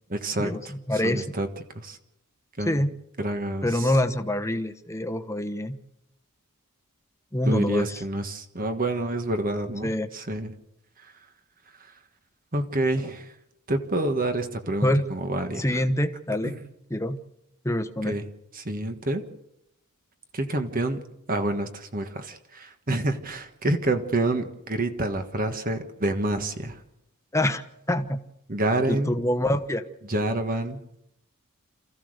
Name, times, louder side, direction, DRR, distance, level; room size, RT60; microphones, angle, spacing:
voice 1, 0.1-1.5 1.7-2.0 2.6-2.8 3.2-3.9 7.4-10.5 11.0-11.1 11.8-11.9 12.5-13.3 13.7-15.8 16.4-16.6 18.0-18.2 18.5-19.2 20.3-21.0 21.3-26.8 28.5-29.1 30.1-30.8, right 1 dB, 40° right, 7 dB, 1.5 m, -28 dB
voice 2, 0.9-1.2 2.7-2.9 3.6-5.8 7.3-8.0 9.8-10.1 14.8-15.0 15.6-16.5 16.9-17.2 17.6-18.2 27.3-27.6 27.9-28.2 28.9-29.8, left 1 dB, 15° left, 9 dB, 1.1 m, -25 dB
28.0 x 15.0 x 6.6 m, 0.82 s
head